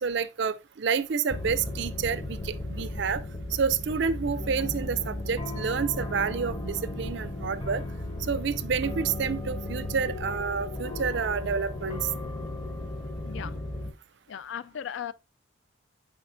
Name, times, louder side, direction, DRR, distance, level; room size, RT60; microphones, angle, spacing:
voice 1, 0.0-3.2 3.5-7.8 8.3-12.1, right 6 dB, 60° right, 0.4 m, -29 dB
sound 1, 1.3-13.9, left 1 dB, 25° left, 0.8 m, -35 dB
voice 2, 13.2-13.6 14.3-15.1, left 8 dB, 70° left, 0.3 m, -36 dB
7.2 x 5.0 x 2.6 m
head